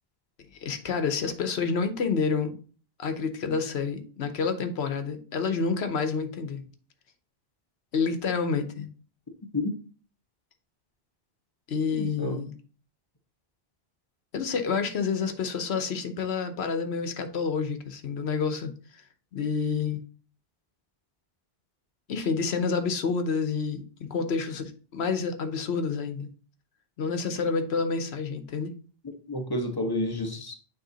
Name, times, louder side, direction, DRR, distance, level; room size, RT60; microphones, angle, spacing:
voice 1, 0.6-2.6 3.0-6.7 7.9-8.9 11.7-12.5 14.3-19.0 19.3-20.0 22.1-23.8 24.1-26.3 27.0-28.7, left 5 dB, 80° left, 8 dB, 1.1 m, -28 dB
voice 2, 11.9-12.4 29.3-30.5, left 1 dB, 25° left, 4 dB, 0.9 m, -30 dB
9.1 x 3.1 x 3.9 m, 0.40 s
omnidirectional pair, 1.1 m